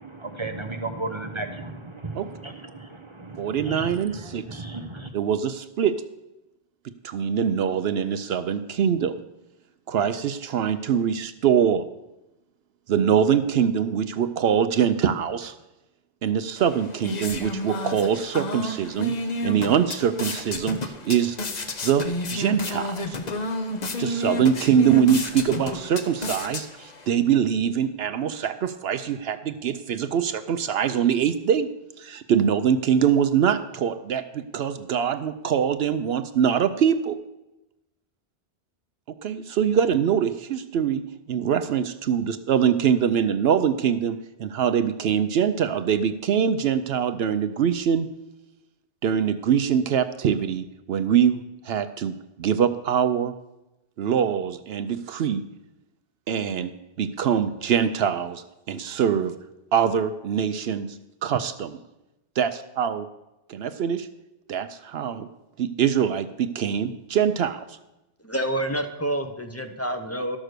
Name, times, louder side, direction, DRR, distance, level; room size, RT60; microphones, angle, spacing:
voice 1, 0.0-5.1, right 2 dB, 30° right, 5 dB, 0.8 m, -35 dB
voice 2, 3.4-4.6 5.1-5.9 7.0-9.2 9.9-11.8 12.9-15.5 16.2-19.1 19.4-21.4 21.8-23.2 24.0-31.7 32.0-37.2 39.2-41.0 41.3-48.1 49.0-51.4 51.6-53.3 54.0-55.4 56.3-56.7 57.0-59.3 59.7-61.8 62.4-63.1 63.5-64.1 64.5-65.3 65.6-67.8, right 8 dB, 70° right, 11 dB, 0.8 m, -23 dB
sound 1, 16.6-27.1, left 2 dB, 40° left, 0.9 m, -31 dB
voice 3, 68.2-70.4, right 1 dB, 15° left, 6 dB, 0.8 m, -28 dB
12.5 x 6.2 x 6.6 m, 0.95 s
omnidirectional pair, 1.1 m